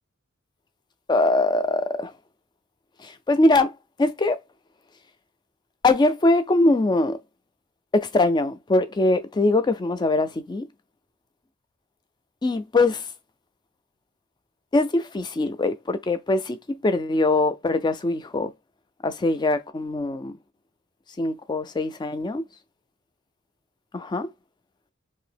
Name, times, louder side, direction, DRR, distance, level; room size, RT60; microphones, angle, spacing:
voice 1, 1.1-2.1 3.0-4.4 5.8-7.2 7.9-10.7 12.4-13.0 14.7-18.5 19.0-20.3 21.2-22.4 23.9-24.3, left 2 dB, 20° left, 0.3 m, -22 dB
2.8 x 2.7 x 3.4 m
head